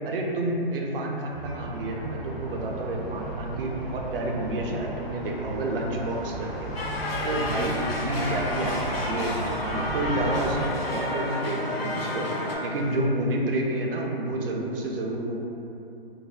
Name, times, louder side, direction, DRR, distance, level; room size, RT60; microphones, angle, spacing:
voice 1, 0.0-6.7 7.2-12.3 12.6-15.4, right 1 dB, 70° right, 0 dB, 0.5 m, -29 dB
sound 1, 1.3-10.6, right 1 dB, ahead, 0.4 m, -35 dB
sound 2, 6.8-12.6, left 1 dB, 75° left, 0.5 m, -31 dB
sound 3, 7.2-13.0, left 1 dB, 35° left, 0.7 m, -39 dB
3.2 x 2.1 x 2.3 m, 2.8 s
figure-of-eight pair, 130°, 30 cm